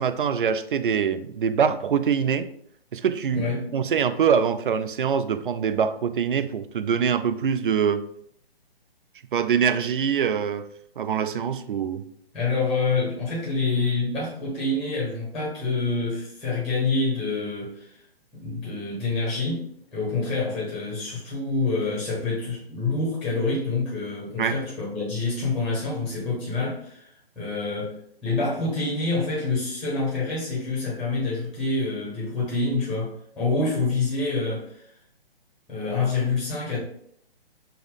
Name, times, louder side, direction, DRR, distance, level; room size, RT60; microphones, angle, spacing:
voice 1, 0.0-2.5 2.9-3.5 3.7-8.1 9.3-10.7 11.0-12.0 24.4-24.6, right 7 dB, 55° right, 0.4 m, -24 dB
voice 2, 3.3-3.7 12.3-17.9 18.3-27.1 27.4-34.8 35.7-36.8, left 3 dB, ahead, 0.8 m, -27 dB
5.5 x 2.1 x 3.6 m
figure-of-eight pair, 135°, 31 cm